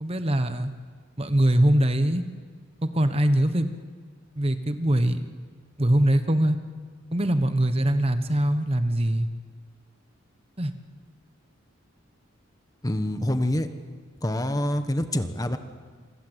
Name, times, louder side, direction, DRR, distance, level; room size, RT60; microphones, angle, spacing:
voice 1, 0.0-0.7 1.2-2.2 2.8-3.7 4.4-5.3 5.8-6.6 7.1-9.3 10.6-10.7, right 1 dB, 30° right, 9 dB, 1.1 m, -22 dB
voice 2, 12.8-13.7 14.2-15.6, left 1 dB, 20° left, 9 dB, 1.3 m, -26 dB
28.0 x 25.0 x 8.1 m, 1.6 s
head